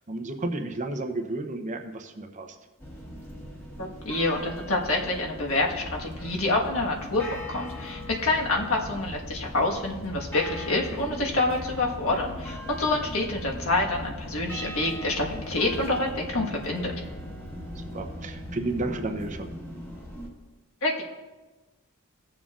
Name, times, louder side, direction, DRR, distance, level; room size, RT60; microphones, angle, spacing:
voice 1, 0.1-2.6 17.7-19.5, right 2 dB, 35° right, 5 dB, 0.7 m, -32 dB
sound 1, 2.8-20.3, left 1 dB, 10° left, 1.4 m, -40 dB
voice 2, 3.8-16.9 20.8-21.0, left 2 dB, 70° left, -1 dB, 1.5 m, -27 dB
sound 2, 5.5-19.7, left 1 dB, 45° left, 2.8 m, -44 dB
18.5 x 7.2 x 2.5 m, 1.2 s
head